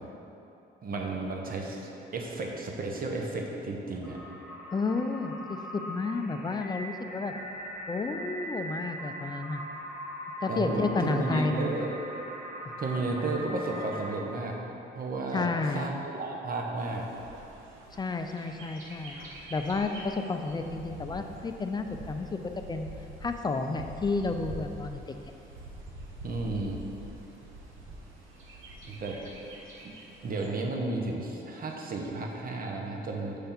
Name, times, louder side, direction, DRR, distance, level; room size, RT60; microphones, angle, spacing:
voice 1, 0.8-4.2 10.5-11.9 12.8-14.6 14.9-17.1 26.2-26.8 28.9-29.3 30.2-33.4, right 2 dB, 45° right, 0 dB, 0.9 m, -33 dB
sound 1, 4.0-14.2, equal, ahead, 1.4 m, -41 dB
voice 2, 4.7-7.3 7.9-9.6 10.4-11.7 12.7-12.8 15.3-15.9 18.0-19.2 19.5-22.4 22.7-22.9 23.2-25.0, left 3 dB, 20° left, 6 dB, 0.4 m, -31 dB
Bird, 16.8-30.5, equal, 85° right, 0.9 m, -45 dB
6.6 x 3.4 x 5.9 m, 2.9 s
cardioid pair, 90°, 20 cm